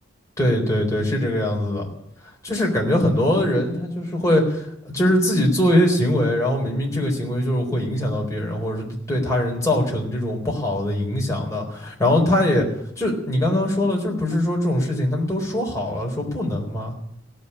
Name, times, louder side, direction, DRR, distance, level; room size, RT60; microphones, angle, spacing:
voice 1, 0.4-1.9 2.4-12.7 13.0-16.9, left 1 dB, 15° left, -1 dB, 4.1 m, -22 dB
17.0 x 6.9 x 10.0 m, 0.72 s
head